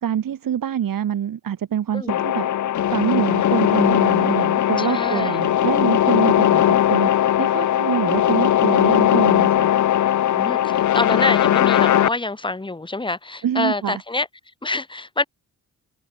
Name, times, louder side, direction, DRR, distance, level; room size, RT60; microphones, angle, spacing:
voice 1, 0.0-2.5 2.9-7.1 7.4-9.7 13.4-14.0, right 9 dB, 65° right, 2.2 m, -25 dB
sound 1, 2.1-12.1, left 11 dB, 55° left, 0.7 m, -19 dB
voice 2, 4.8-5.4 10.3-14.3 14.6-15.2, left 2 dB, 15° left, 1.7 m, -26 dB
cardioid pair, 85°, 36 cm